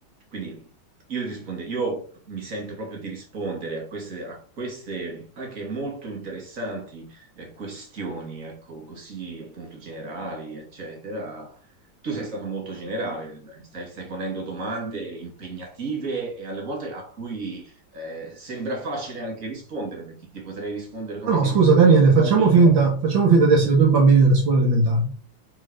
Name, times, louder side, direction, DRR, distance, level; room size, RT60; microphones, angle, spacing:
voice 1, 0.3-0.7 1.1-2.0 2.3-11.6 12.0-22.7, right 3 dB, 40° right, 2.9 m, -33 dB
voice 2, 21.3-25.2, right 4 dB, 70° right, 2.4 m, -16 dB
8.5 x 4.6 x 5.2 m
omnidirectional pair, 2.1 m